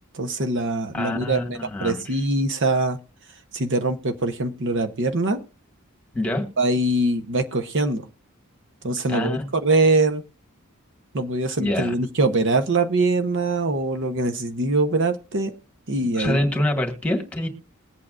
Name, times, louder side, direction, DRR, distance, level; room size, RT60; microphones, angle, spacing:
voice 1, 0.1-3.0 3.5-5.4 6.6-8.0 8.8-10.2 11.1-15.5 15.9-16.4, right 2 dB, 60° right, 6 dB, 1.0 m, -23 dB
voice 2, 0.9-2.1 6.1-6.5 9.1-9.4 11.6-11.9 16.2-17.5, left 1 dB, 5° left, 3 dB, 1.8 m, -25 dB
21.5 x 8.5 x 2.5 m, 0.34 s
head